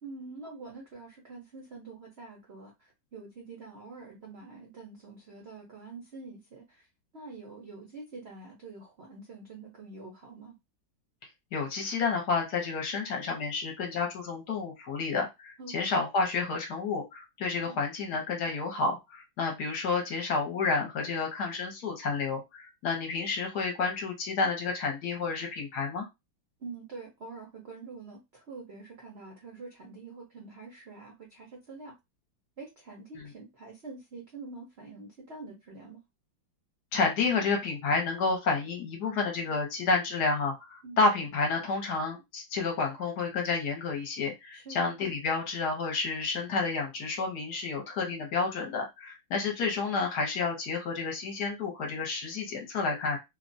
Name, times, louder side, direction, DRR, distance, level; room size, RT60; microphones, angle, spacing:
voice 1, 0.0-6.9 7.1-10.6 15.6-15.8 17.7-17.8 26.6-31.9 32.6-36.0 40.8-41.0 44.5-44.8, right 3 dB, 60° right, -1 dB, 0.6 m, -46 dB
voice 2, 11.5-26.1 33.2-33.3 36.9-53.2, left 4 dB, 65° left, 2 dB, 1.2 m, -30 dB
3.1 x 2.2 x 2.5 m, 0.22 s
omnidirectional pair, 2.1 m